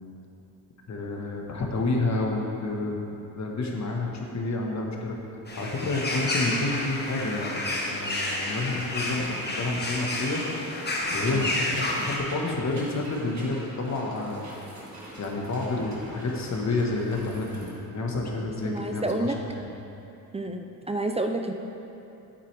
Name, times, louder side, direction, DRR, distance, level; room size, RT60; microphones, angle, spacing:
voice 1, 0.9-5.1 5.6-10.4 11.1-14.5 15.2-19.7, left 2 dB, 45° left, 0 dB, 1.4 m, -29 dB
sound 1, 5.5-12.2, left 1 dB, 25° left, 1.3 m, -30 dB
sound 2, 11.0-17.7, right 1 dB, 45° right, 1.8 m, -43 dB
voice 2, 18.6-19.4 20.3-21.5, right 2 dB, 15° right, 4 dB, 0.4 m, -29 dB
8.5 x 8.4 x 3.4 m, 2.9 s
cardioid pair, 90°, 39 cm